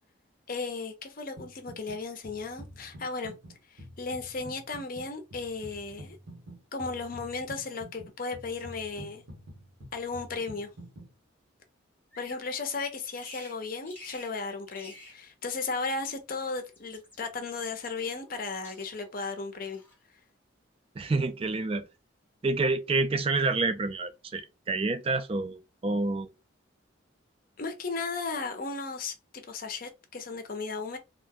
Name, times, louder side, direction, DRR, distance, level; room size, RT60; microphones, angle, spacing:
voice 1, 0.5-3.3 3.7-6.2 6.7-9.2 9.9-10.7 12.2-19.8 27.6-31.0, left 4 dB, 45° left, 0.6 m, -35 dB
sound 1, 1.4-2.0 2.2-11.1, equal, 80° right, 1.0 m, -48 dB
Bird vocalization bird call bird song, 12.1-12.5 13.1-13.6 13.9-14.3 14.7-15.2 16.2-17.2 18.0-18.4 18.6-19.1 19.6-20.0, left 2 dB, 10° left, 0.7 m, -50 dB
voice 2, 21.0-21.9 22.4-26.3, right 3 dB, 30° right, 0.3 m, -28 dB
2.4 x 2.1 x 3.5 m
head